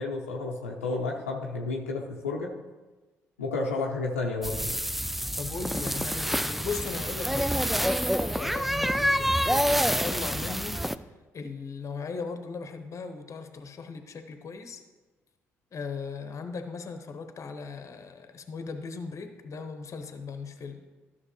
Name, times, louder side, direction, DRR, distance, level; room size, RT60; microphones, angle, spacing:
voice 1, 0.0-2.5 3.4-4.7, left 3 dB, 90° left, -1 dB, 0.7 m, -31 dB
sound 1, 4.4-10.9, equal, ahead, 0.4 m, -27 dB
voice 2, 5.4-11.1 11.3-14.8 15.7-20.8, left 4 dB, 45° left, 7 dB, 1.0 m, -38 dB
13.0 x 6.0 x 3.1 m, 1.2 s
hypercardioid pair, 45°, 7 cm